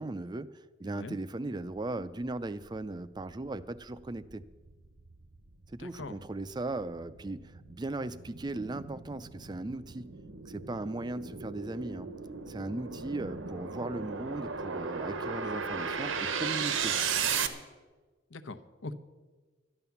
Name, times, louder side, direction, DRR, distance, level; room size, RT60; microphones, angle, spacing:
voice 1, 0.0-4.4 5.7-10.1 10.5-12.1 12.5-17.0, right 2 dB, 20° right, 15 dB, 0.4 m, -38 dB
sound 1, 3.3-17.5, right 6 dB, 85° right, 1.1 m, -36 dB
voice 2, 5.8-6.2 18.3-18.9, left 2 dB, 75° left, 9 dB, 0.9 m, -42 dB
13.0 x 11.0 x 7.1 m, 1.3 s
head